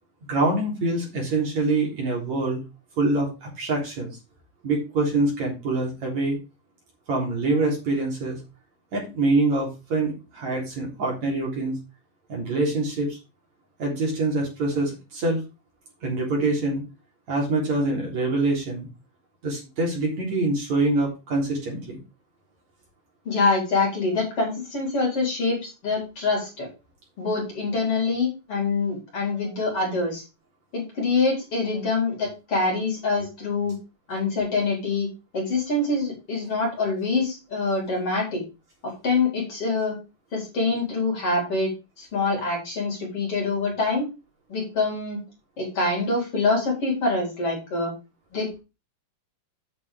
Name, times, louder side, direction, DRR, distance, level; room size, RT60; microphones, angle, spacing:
voice 1, 0.2-2.6 3.0-4.2 4.6-6.4 7.1-8.4 8.9-11.8 12.3-13.2 13.8-15.4 16.0-16.8 17.3-18.9 19.4-22.0, right 2 dB, 50° right, -2 dB, 4.7 m, -25 dB
voice 2, 23.2-26.7 27.2-30.2 30.7-33.8 34.1-35.1 35.3-38.4 38.8-40.0 40.3-41.7 42.0-44.1 44.5-45.2 45.6-47.9 48.3-48.6, left 3 dB, 40° left, -3 dB, 4.9 m, -25 dB
9.0 x 6.1 x 5.0 m, 0.28 s
omnidirectional pair, 4.2 m